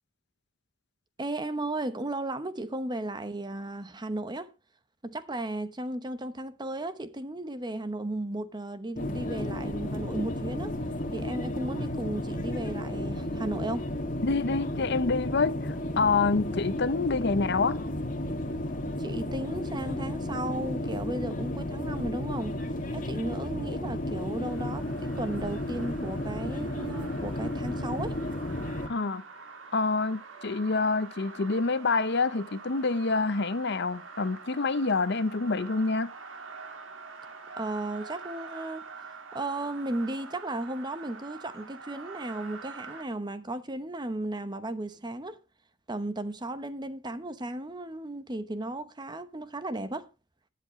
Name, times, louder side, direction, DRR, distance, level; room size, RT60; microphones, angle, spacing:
voice 1, 1.2-4.5 5.0-10.7 11.1-13.9 19.0-22.6 22.9-28.2 37.6-38.8 39.3-45.4 45.9-50.1, right 1 dB, 20° right, 0.8 m, -35 dB
sound 1, 9.0-28.9, left 1 dB, 40° left, 2.1 m, -33 dB
voice 2, 14.2-17.8 28.9-29.2 29.7-36.1, left 4 dB, 55° left, 0.7 m, -27 dB
sound 2, 24.4-43.0, right 4 dB, 70° right, 1.9 m, -46 dB
20.5 x 7.7 x 3.1 m
head